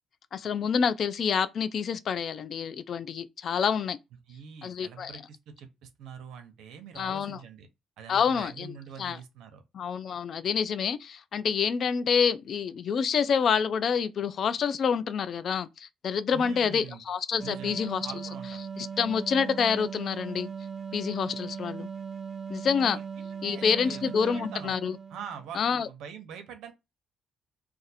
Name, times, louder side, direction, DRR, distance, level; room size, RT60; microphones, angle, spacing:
voice 1, 0.3-4.0 4.6-5.2 7.0-7.4 8.1-8.7 9.0-9.2 9.7-18.1 18.8-20.5 20.9-21.9 22.5-23.0 23.4-25.0 25.5-25.9, left 6 dB, 60° left, 0.3 m, -27 dB
voice 2, 4.3-7.7 8.0-9.6 16.3-17.0 17.4-18.6 22.9-24.8 25.1-26.7, right 7 dB, 85° right, 0.7 m, -44 dB
sound 1, 17.4-25.5, right 6 dB, 45° right, 0.4 m, -39 dB
2.5 x 2.4 x 4.0 m
cardioid pair, 90°, 0 cm